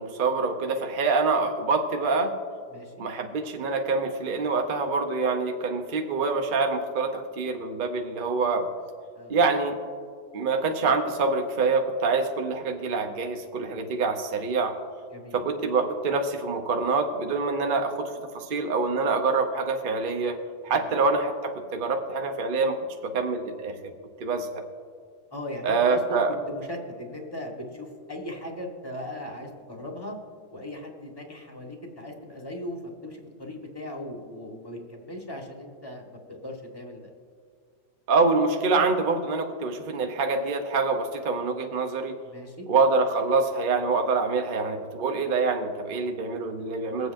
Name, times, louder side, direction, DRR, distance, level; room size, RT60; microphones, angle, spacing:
voice 1, 0.0-2.3 3.0-8.7 9.3-9.7 10.3-14.8 15.3-20.4 20.6-22.8 23.0-23.7 24.2-24.6 25.6-26.3 38.1-42.1 42.7-47.1, right 4 dB, 45° right, 4 dB, 0.7 m, -25 dB
voice 2, 2.7-3.1 9.1-9.4 15.1-15.4 20.7-20.9 25.3-26.2 26.5-30.2 30.5-37.1 42.2-42.7, left 1 dB, 15° left, 0 dB, 1.2 m, -38 dB
23.0 x 8.0 x 2.6 m, 2.1 s
omnidirectional pair, 1.8 m